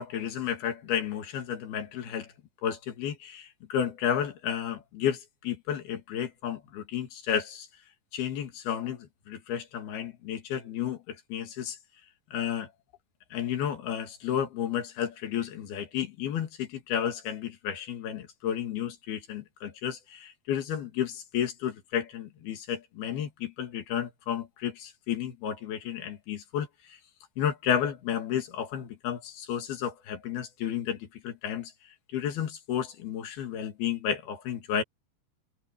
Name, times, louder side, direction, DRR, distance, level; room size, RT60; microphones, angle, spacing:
voice 1, 0.0-2.3 2.6-7.7 8.1-11.8 12.3-12.7 13.3-27.0 27.4-31.7 32.1-34.8, left 9 dB, 90° left, 4.2 m, -32 dB
omnidirectional pair, 4.3 m